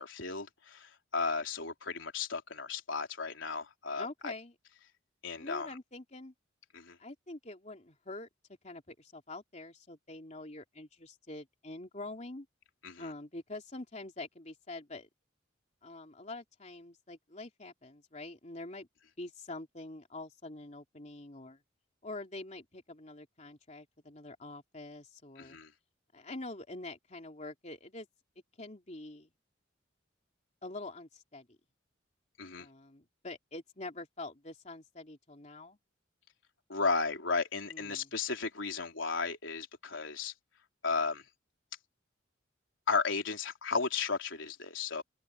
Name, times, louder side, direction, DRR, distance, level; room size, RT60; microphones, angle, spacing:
voice 1, 0.0-4.3 5.2-5.8 6.7-7.0 12.8-13.1 25.4-25.7 32.4-32.7 36.7-40.3 40.8-41.2 42.9-45.0, left 4 dB, 80° left, 3.6 m, -34 dB
voice 2, 4.0-4.5 5.4-6.3 7.0-8.3 8.6-12.5 13.0-15.1 15.8-18.9 19.2-21.6 22.0-25.6 26.1-28.1 28.6-29.3 30.6-31.5 32.6-35.8 37.7-38.1, left 2 dB, 35° left, 3.0 m, -45 dB
open air
head